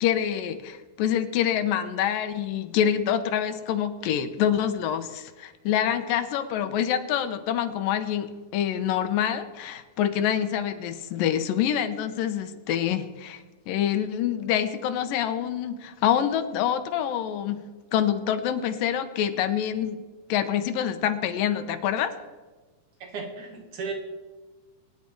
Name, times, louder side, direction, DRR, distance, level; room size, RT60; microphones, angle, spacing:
voice 1, 0.0-17.6 17.9-20.0 20.3-22.1, left 9 dB, 85° left, 9 dB, 2.6 m, -26 dB
voice 2, 23.0-23.9, right 4 dB, 65° right, 2 dB, 3.1 m, -35 dB
23.0 x 9.8 x 4.7 m, 1.3 s
omnidirectional pair, 4.0 m